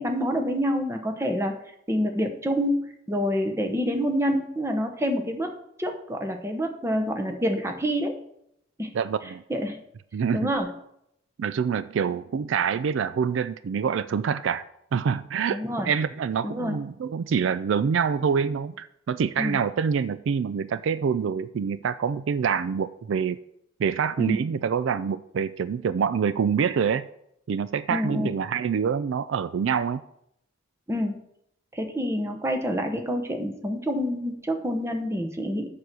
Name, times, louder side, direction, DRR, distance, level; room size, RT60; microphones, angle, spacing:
voice 1, 0.0-1.5 1.9-5.5 5.8-8.2 8.8-8.9 9.5-9.8 10.3-10.7 15.5-15.9 16.4-16.8 19.4-19.6 24.2-24.4 27.9-28.3 30.9-31.2 31.7-35.7, equal, 15° right, 4 dB, 0.9 m, -27 dB
voice 2, 8.9-9.4 10.1-10.5 11.4-14.6 14.9-23.4 23.8-27.1 27.5-30.0, right 6 dB, 65° right, 15 dB, 0.3 m, -26 dB
7.1 x 6.6 x 6.1 m, 0.76 s
head